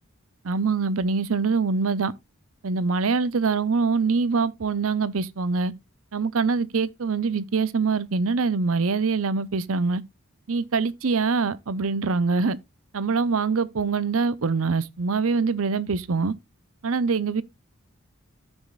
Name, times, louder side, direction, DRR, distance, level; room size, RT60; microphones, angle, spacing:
voice 1, 0.4-2.1 2.6-5.7 6.1-10.0 10.5-12.6 12.9-16.3 16.8-17.4, right 4 dB, 75° right, 0.7 m, -24 dB
14.5 x 6.3 x 2.4 m
head